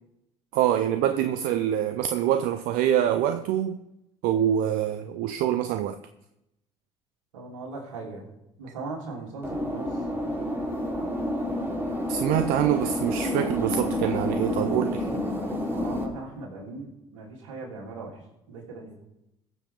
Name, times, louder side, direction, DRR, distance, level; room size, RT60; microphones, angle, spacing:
voice 1, 0.5-3.8 4.2-6.0 12.1-15.1, right 11 dB, 65° right, 0.6 m, -25 dB
voice 2, 7.3-8.2 8.6-9.9 15.4-18.1 18.5-18.9, right 3 dB, 80° right, 3.2 m, -39 dB
sound 1, 9.4-16.0, left 1 dB, 15° right, 3.8 m, -29 dB
21.0 x 7.3 x 3.7 m
hypercardioid pair, 60°, 16 cm